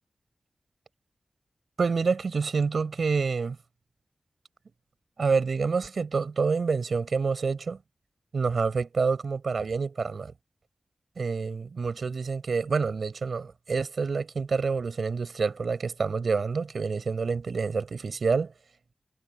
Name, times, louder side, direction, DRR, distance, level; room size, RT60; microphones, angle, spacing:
voice 1, 1.8-3.6 5.2-7.8 8.3-10.3 11.2-18.5, right 5 dB, 80° right, 5.6 m, -27 dB
cardioid pair, 40°, 0 cm